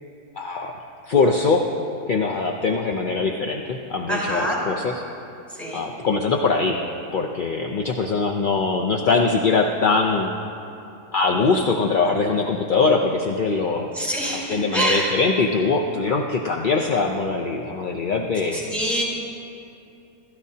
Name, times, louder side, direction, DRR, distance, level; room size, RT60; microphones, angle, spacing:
voice 1, 0.4-0.7 1.1-1.6 2.1-5.0 5.7-6.8 7.1-10.3 11.1-13.9 14.3-18.6, left 4 dB, 50° left, 1 dB, 0.6 m, -22 dB
voice 2, 4.1-4.6 5.6-5.8 13.9-14.4 14.7-15.1 18.5-19.0, right 1 dB, ahead, -5 dB, 4.1 m, -24 dB
27.0 x 14.0 x 2.8 m, 2.7 s
omnidirectional pair, 1.6 m